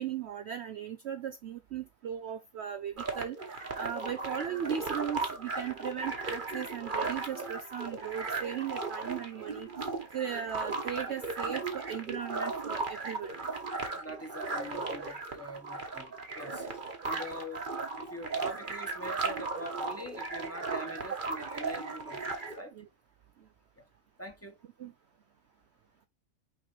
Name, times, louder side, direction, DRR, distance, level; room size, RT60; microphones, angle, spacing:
voice 1, 0.0-3.4 3.8-9.7 10.1-13.4 22.7-22.9 24.8-24.9, right 8 dB, 60° right, 0.8 m, -37 dB
sound 1, 3.0-22.6, right 3 dB, 35° right, 1.4 m, -36 dB
voice 2, 13.9-16.7 17.0-17.6 18.0-22.8 23.8-23.9 24.2-24.6, equal, 10° left, 1.5 m, -44 dB
6.0 x 5.0 x 3.3 m
omnidirectional pair, 1.5 m